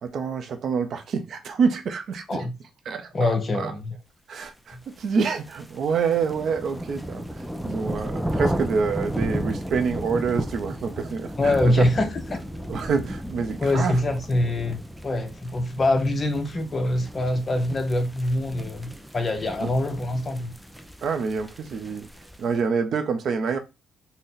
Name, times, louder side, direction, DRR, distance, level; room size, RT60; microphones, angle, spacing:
voice 1, 0.0-2.4 2.9-3.7 4.3-11.7 12.7-14.0 19.6-19.7 21.0-22.1 22.4-23.6, right 5 dB, 60° right, 0.5 m, -27 dB
voice 2, 3.1-3.9 11.4-12.4 13.6-20.5, left 1 dB, 35° left, 0.7 m, -24 dB
sound 1, 5.0-22.5, right 1 dB, 5° right, 0.4 m, -34 dB
3.9 x 2.1 x 3.9 m
cardioid pair, 90°, 0 cm